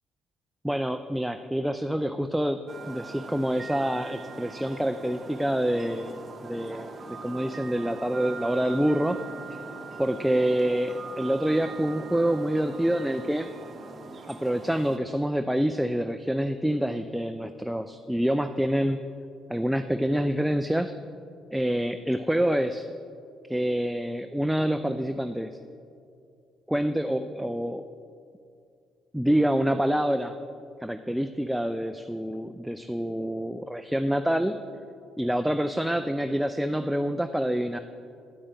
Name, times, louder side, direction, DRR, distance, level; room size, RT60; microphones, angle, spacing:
voice 1, 0.6-2.6 2.9-6.2 6.4-6.9 7.2-9.2 10.0-13.5 14.3-19.0 19.5-21.0 21.5-22.9 23.5-25.6 26.7-27.8 29.1-30.4 30.8-34.6 35.2-37.8, equal, 5° right, 9 dB, 0.3 m, -27 dB
sound 1, 2.7-15.0, right 4 dB, 40° right, 0.8 m, -41 dB
9.0 x 8.6 x 3.4 m, 2.5 s
hypercardioid pair, 50°, 0 cm